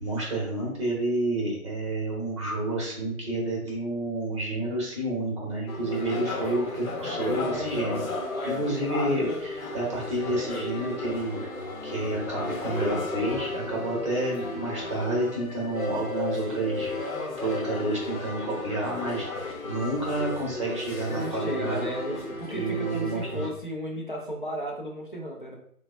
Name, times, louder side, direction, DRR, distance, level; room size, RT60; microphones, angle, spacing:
voice 1, 0.0-8.0 8.4-11.4 11.8-16.9 17.4-21.9 22.5-23.5, right 1 dB, 20° right, -3 dB, 0.7 m, -29 dB
sound 1, 5.7-23.5, left 2 dB, 65° left, 0.9 m, -34 dB
voice 2, 21.1-25.6, equal, 35° left, -1 dB, 0.4 m, -34 dB
3.7 x 2.1 x 2.5 m, 0.67 s
figure-of-eight pair, 140°, 45 cm